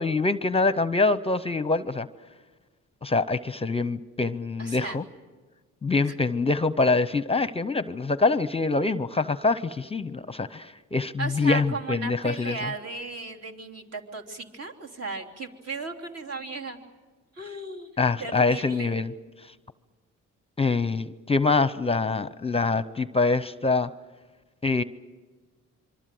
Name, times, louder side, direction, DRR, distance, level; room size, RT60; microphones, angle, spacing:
voice 1, 0.0-2.1 3.0-5.0 5.8-12.6 18.0-19.1 20.6-23.9 24.6-24.8, left 3 dB, 20° left, 15 dB, 0.7 m, -25 dB
voice 2, 4.6-5.0 6.0-6.1 11.2-16.8 17.3-17.9 18.2-19.0, right 3 dB, 55° right, 2 dB, 3.3 m, -35 dB
26.0 x 24.0 x 7.8 m, 1.3 s
cardioid pair, 90°, 30 cm